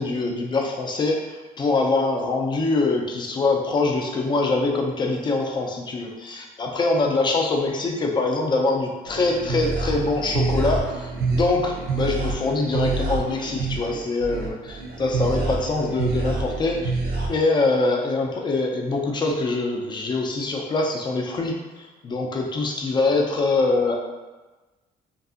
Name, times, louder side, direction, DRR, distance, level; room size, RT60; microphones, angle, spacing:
voice 1, 0.0-17.0 17.3-21.6 22.0-24.0, left 3 dB, 25° left, 1 dB, 0.4 m, -24 dB
sound 1, 9.1-17.3, right 3 dB, 65° right, 0.5 m, -27 dB
2.6 x 2.4 x 2.4 m, 1.2 s
cardioid pair, 110°, 17 cm